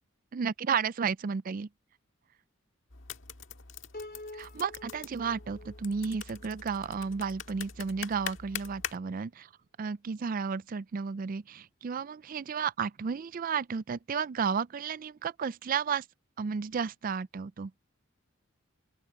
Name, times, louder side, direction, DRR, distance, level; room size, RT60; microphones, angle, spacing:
voice 1, 0.3-1.7 4.3-9.5 9.8-16.1 16.4-17.7, right 6 dB, 45° right, 0.4 m, -33 dB
sound 1, 2.9-9.0, left 7 dB, 70° left, 1.7 m, -43 dB
Piano, 3.9-7.2, left 2 dB, 45° left, 2.8 m, -48 dB
open air
head